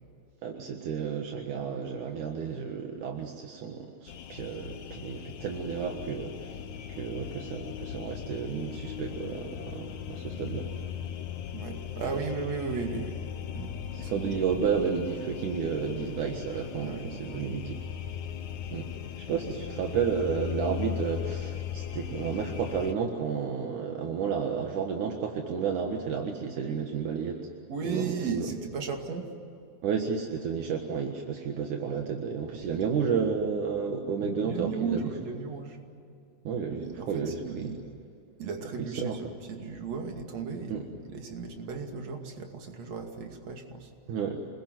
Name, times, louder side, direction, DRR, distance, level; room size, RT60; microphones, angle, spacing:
voice 1, 0.4-6.6 6.9-10.7 12.0-12.1 13.9-17.8 18.7-18.9 19.3-27.5 27.8-28.5 29.8-35.1 36.4-37.7 38.8-39.2 40.7-40.8 44.1-44.5, right 6 dB, 75° right, 3 dB, 3.0 m, -32 dB
sound 1, 4.1-22.9, left 9 dB, 70° left, 2.4 m, -38 dB
voice 2, 11.5-13.2 13.6-14.5 16.8-17.8 27.7-29.3 32.6-32.8 33.1-33.2 34.4-35.8 36.8-37.8 38.4-43.9, right 5 dB, 55° right, 3 dB, 3.6 m, -36 dB
27.5 x 21.0 x 9.4 m, 2.6 s
omnidirectional pair, 3.6 m